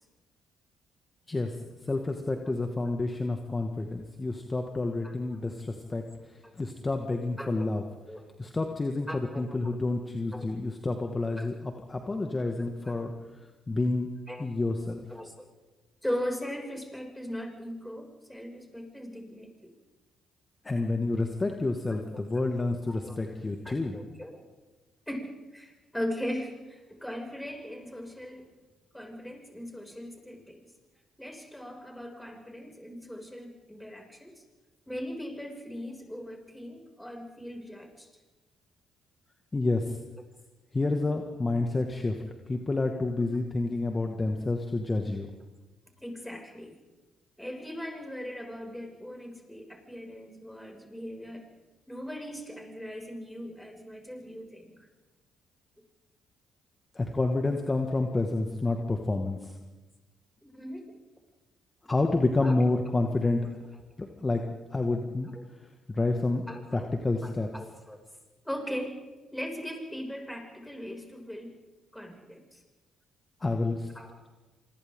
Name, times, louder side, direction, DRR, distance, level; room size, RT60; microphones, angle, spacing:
voice 1, 1.8-6.0 6.6-7.8 8.4-13.1 13.7-14.1 14.4-15.0 20.6-24.0 39.5-40.0 40.7-42.2 42.5-45.3 57.0-59.5 61.9-63.5 64.0-64.4 64.7-65.3 65.9-66.5 66.7-67.5 73.4-73.9, left 2 dB, 25° left, 4 dB, 2.1 m, -29 dB
voice 2, 7.4-7.8 8.1-8.3 9.1-9.6 10.3-10.5 11.4-11.5 12.8-12.9 14.3-14.5 15.1-15.5 16.0-19.7 22.3-22.5 22.9-23.2 23.6-24.4 25.1-28.5 28.9-30.7 31.2-34.3 34.9-38.1 46.0-46.8 47.4-51.5 51.9-54.7 60.4-60.9 62.4-62.6 65.3-65.4 66.5-66.9 67.2-68.0 68.4-69.0 69.3-71.6 71.9-72.6 73.9-74.1, equal, 5° left, 2 dB, 6.7 m, -39 dB
27.0 x 25.5 x 3.9 m, 1.2 s
hypercardioid pair, 45°, 0 cm